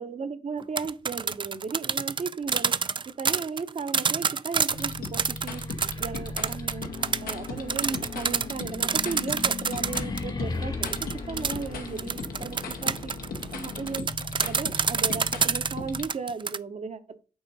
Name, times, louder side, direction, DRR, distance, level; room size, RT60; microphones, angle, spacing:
voice 1, 0.0-5.6 6.0-6.9 7.2-13.2 13.5-14.2 14.5-17.2, right 5 dB, 50° right, 11 dB, 0.9 m, -36 dB
sound 1, 0.6-10.2 10.8-16.6, right 5 dB, 35° right, 0.4 m, -28 dB
sound 2, 4.7-16.1, left 4 dB, 85° left, 1.0 m, -37 dB
sound 3, 5.6-12.5, left 3 dB, 30° left, 1.0 m, -39 dB
8.7 x 3.0 x 4.1 m, 0.34 s
supercardioid pair, 50°, 15 cm